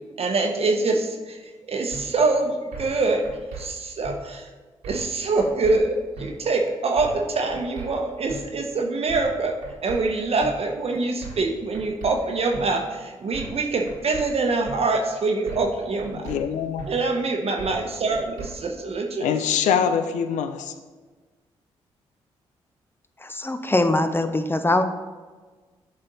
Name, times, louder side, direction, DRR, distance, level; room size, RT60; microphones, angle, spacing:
voice 1, 0.2-1.4 1.7-3.2 3.6-4.5 4.8-9.5 9.8-16.3 16.9-19.4, right 3 dB, 55° right, 2 dB, 0.9 m, -24 dB
sound 1, 1.9-2.0 2.7-3.0 3.2-3.6 4.0-4.2 4.8-5.1 5.4-5.8 6.2-6.3 7.0-7.2 7.5-7.9 8.3-8.4 9.1-9.3 9.6-10.0 10.4-10.5 11.2-11.5 11.7-12.1 12.5-12.6 13.3-13.6 13.9-14.2 14.6-14.8 15.5-15.7 16.0-16.4 16.8-16.9 17.6-17.8 18.1-18.5, right 5 dB, 85° right, 1.3 m, -37 dB
voice 2, 16.1-16.8 19.2-20.7, left 8 dB, 80° left, 9 dB, 0.5 m, -24 dB
voice 3, 23.2-24.8, left 2 dB, 20° left, 9 dB, 0.7 m, -22 dB
7.5 x 4.3 x 4.0 m, 1.3 s
supercardioid pair, 45°, 12 cm